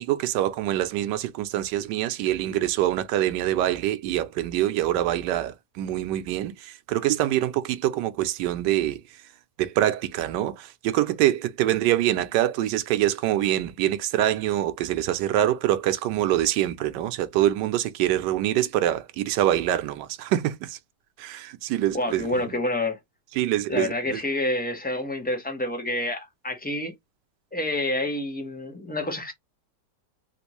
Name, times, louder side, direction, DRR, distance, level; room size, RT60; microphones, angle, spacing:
voice 1, 0.0-9.0 9.6-20.8 21.2-22.6 23.3-24.2, right 13 dB, 90° right, 1.2 m, -25 dB
voice 2, 21.9-23.0 23.7-26.9 27.5-29.3, left 1 dB, 10° left, 0.7 m, -28 dB
3.5 x 2.5 x 2.9 m
omnidirectional pair, 1.8 m